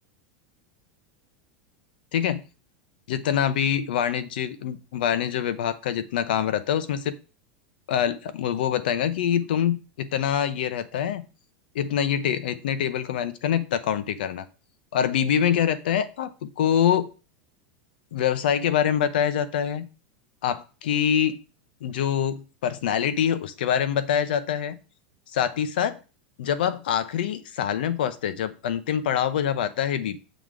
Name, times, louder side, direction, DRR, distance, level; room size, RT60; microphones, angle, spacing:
voice 1, 3.1-7.1 7.9-11.2 11.7-14.5 14.9-17.1 18.1-19.9 20.4-21.4 21.8-24.7 25.3-26.0 26.4-30.2, left 9 dB, 80° left, 12 dB, 0.8 m, -25 dB
7.0 x 3.9 x 4.7 m, 0.33 s
supercardioid pair, 160°, 5 cm